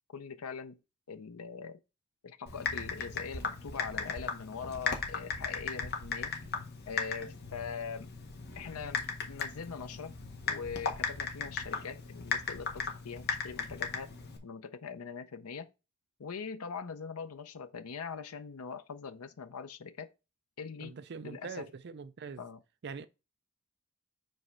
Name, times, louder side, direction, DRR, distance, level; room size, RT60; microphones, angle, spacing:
voice 1, 0.1-0.8 1.1-1.8 2.2-6.3 6.9-8.1 8.5-10.1 10.4-14.1 14.4-15.7 16.2-20.1 20.6-21.0 21.2-21.7 22.4-22.6 23.0-23.1, left 6 dB, 85° left, 0.6 m, -42 dB
Typing, 2.5-14.4, left 5 dB, 50° left, 1.4 m, -37 dB
voice 2, 20.8-22.4 22.8-23.1, right 5 dB, 50° right, 0.4 m, -43 dB
5.2 x 4.2 x 6.0 m
head